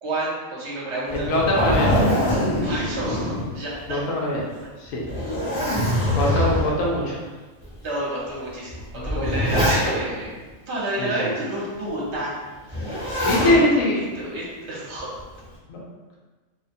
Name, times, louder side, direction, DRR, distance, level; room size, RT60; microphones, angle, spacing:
voice 1, 0.0-1.3 2.5-4.0 6.7-6.8 7.8-10.3 10.7-15.2, right 1 dB, 55° right, -6 dB, 1.0 m, -30 dB
Zipper (clothing), 1.1-4.0 4.4-4.5 5.0-6.9 7.6-7.7 8.7-10.2 12.7-13.6 15.0-15.4, equal, 25° left, 0.6 m, -23 dB
voice 2, 1.3-2.1 3.9-4.4 4.8-5.0 6.1-7.2 9.0-9.4 11.0-11.3 13.2-14.0 15.7-15.8, left 1 dB, 75° left, -3 dB, 1.0 m, -22 dB
2.7 x 2.2 x 2.5 m, 1.3 s
omnidirectional pair, 1.5 m